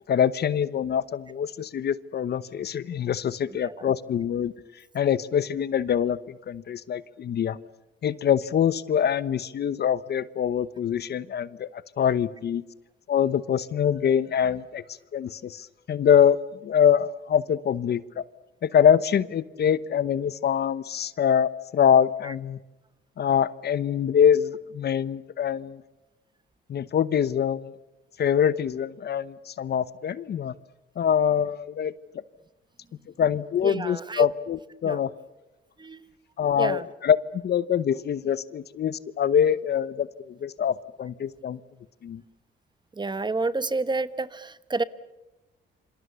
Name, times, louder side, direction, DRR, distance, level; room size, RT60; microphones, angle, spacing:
voice 1, 0.1-4.5 4.9-7.6 8.0-12.6 13.1-14.8 15.1-16.4 16.6-18.2 18.6-22.6 23.2-25.8 26.7-27.7 28.2-30.5 31.0-31.9 33.2-35.1 36.4-41.6 42.0-42.2, left 8 dB, 55° left, 17 dB, 1.0 m, -24 dB
voice 2, 33.6-34.3 34.8-35.0 35.8-36.0 36.6-36.8 43.0-44.8, right 3 dB, 20° right, 14 dB, 1.2 m, -29 dB
27.5 x 25.5 x 6.9 m, 1.0 s
cardioid pair, 90°, 20 cm